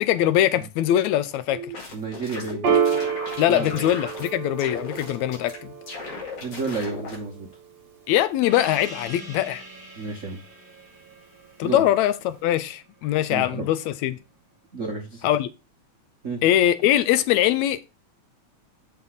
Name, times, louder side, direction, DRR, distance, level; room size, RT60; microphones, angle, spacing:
voice 1, 0.0-1.6 3.4-5.7 8.1-9.6 11.6-14.2 15.2-15.5 16.4-17.9, left 12 dB, 80° left, 1.9 m, -22 dB
sound 1, 1.5-4.3 4.6-5.6 5.9-7.2, left 2 dB, 55° left, 3.1 m, -37 dB
voice 2, 1.9-2.7 3.5-3.8 6.4-7.5 9.9-10.4 11.6-11.8 13.3-13.7 14.7-15.3 16.2-16.4, right 3 dB, 85° right, 0.6 m, -31 dB
Piano, 2.6-9.6, right 7 dB, 45° right, 1.6 m, -30 dB
Gong, 8.4-13.4, right 1 dB, 10° right, 1.2 m, -43 dB
6.5 x 5.5 x 3.9 m
omnidirectional pair, 3.4 m